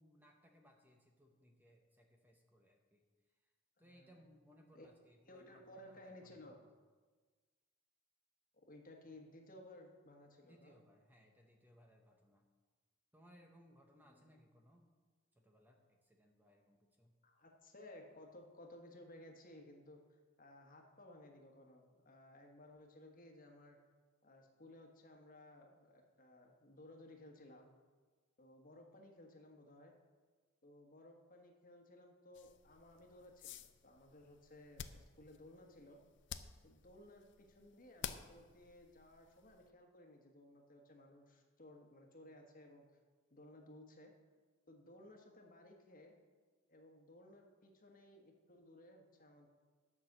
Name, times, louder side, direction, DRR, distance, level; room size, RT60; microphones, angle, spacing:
voice 1, 0.0-3.5 3.8-6.7 10.4-12.5 13.1-14.9 15.3-17.1, equal, 10° right, 2 dB, 0.8 m, -66 dB
voice 2, 3.8-4.2 4.7-4.9 5.2-6.6 8.5-10.8 14.1-14.3 17.2-23.8 24.2-27.7 28.4-29.9 30.6-36.0 36.6-42.8 43.3-44.1 44.7-46.1 46.7-49.5, left 1 dB, 40° left, 2 dB, 1.4 m, -59 dB
sound 1, 32.3-39.7, left 8 dB, 60° left, 0.5 m, -52 dB
10.5 x 6.1 x 7.2 m, 1.4 s
head